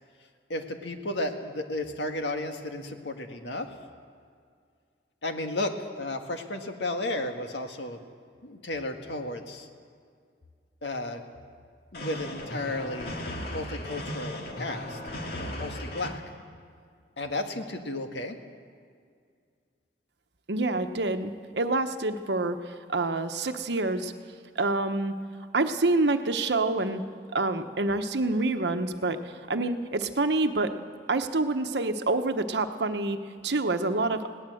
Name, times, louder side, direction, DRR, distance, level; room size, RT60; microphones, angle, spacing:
voice 1, 0.5-3.7 5.2-8.0 8.4-9.7 10.8-11.2 11.9-15.0 15.4-16.2 17.2-18.4, left 2 dB, 85° left, 5 dB, 1.7 m, -33 dB
sound 1, 11.9-16.1, left 1 dB, 60° left, 2.2 m, -36 dB
voice 2, 20.5-22.6 22.9-24.1 24.6-25.1 25.5-27.0 27.3-29.2 29.5-30.7 31.1-33.2 33.4-34.2, right 2 dB, 75° right, 8 dB, 1.0 m, -27 dB
21.0 x 17.5 x 7.8 m, 2.1 s
head